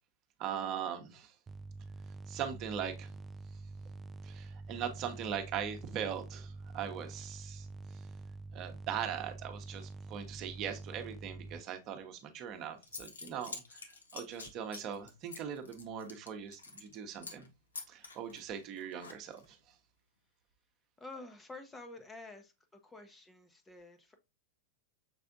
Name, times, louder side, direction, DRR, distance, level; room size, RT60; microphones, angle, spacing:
voice 1, 0.4-1.3 2.3-3.1 4.2-8.0 8.5-13.8 14.1-17.5 17.9-19.6, right 8 dB, 40° right, 0.9 m, -40 dB
sound 1, 1.5-11.6, right 3 dB, 20° right, 0.3 m, -47 dB
Zipper (clothing) / Coin (dropping), 12.5-12.6 12.8-17.0 17.2-17.5 17.7-19.5, left 4 dB, 85° left, 0.8 m, -47 dB
voice 2, 21.0-24.2, left 2 dB, 15° left, 0.7 m, -50 dB
6.1 x 3.3 x 2.5 m
hypercardioid pair, 100°, 0 cm